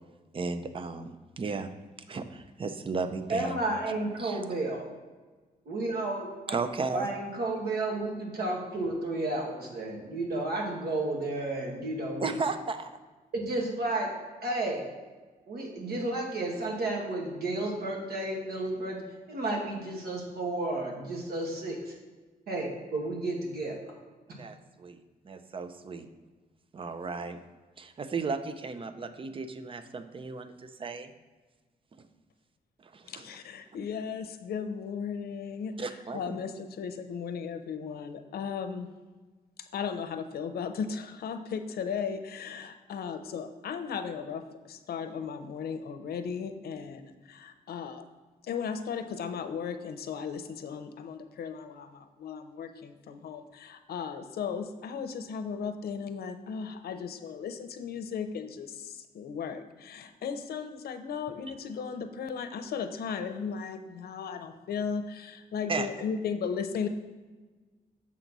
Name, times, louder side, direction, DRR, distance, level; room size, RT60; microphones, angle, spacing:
voice 1, 0.3-1.7 2.1-3.6 4.2-4.4 6.5-7.1 12.2-12.9 24.3-26.1 26.7-27.4 27.8-31.1 31.9-32.0 32.8-33.3 35.8-36.4 65.7-65.9, right 4 dB, 35° right, 10 dB, 0.5 m, -35 dB
voice 2, 3.3-4.9 5.7-6.6 6.9-12.4 13.3-14.1 14.4-14.8 15.5-19.0 19.3-21.9 22.5-23.8, right 2 dB, 80° right, 0 dB, 1.7 m, -32 dB
voice 3, 33.1-35.7 36.1-38.9 39.7-48.0 48.5-66.9, left 6 dB, 85° left, 9 dB, 0.6 m, -36 dB
7.2 x 4.0 x 6.0 m, 1.3 s
wide cardioid pair, 125°, 16 cm